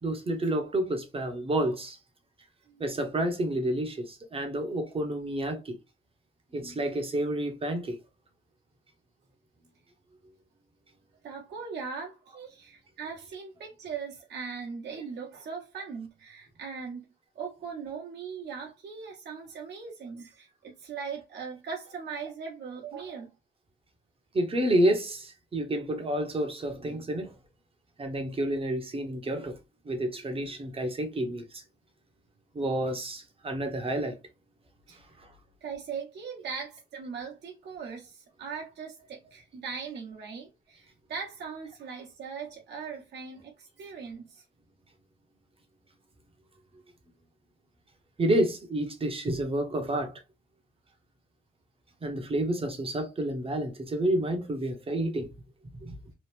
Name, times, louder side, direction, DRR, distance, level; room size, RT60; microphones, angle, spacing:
voice 1, 0.0-2.0 2.8-5.7 6.5-8.0 24.3-27.3 28.0-29.6 29.8-31.6 32.5-34.2 48.2-50.2 52.0-55.3 55.8-56.0, right 1 dB, 30° right, 0.9 m, -29 dB
voice 2, 11.2-17.1 17.3-23.3 34.9-35.0 35.6-44.4, right 5 dB, 60° right, 1.1 m, -39 dB
3.0 x 2.4 x 3.3 m
cardioid pair, 90°, 20 cm